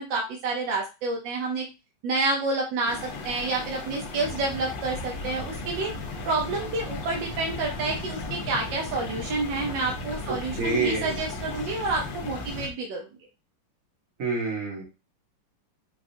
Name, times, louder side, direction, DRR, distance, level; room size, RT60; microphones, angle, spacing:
voice 1, 0.0-1.7 2.0-5.9 6.3-13.1, right 3 dB, 70° right, 0 dB, 1.3 m, -29 dB
sound 1, 2.9-12.7, left 4 dB, 65° left, 1.5 m, -37 dB
sound 2, 4.2-12.7, equal, 30° left, 1.3 m, -41 dB
voice 2, 10.6-11.2 14.2-14.8, right 3 dB, 50° right, -1 dB, 1.2 m, -27 dB
4.8 x 2.4 x 2.5 m, 0.28 s
omnidirectional pair, 2.3 m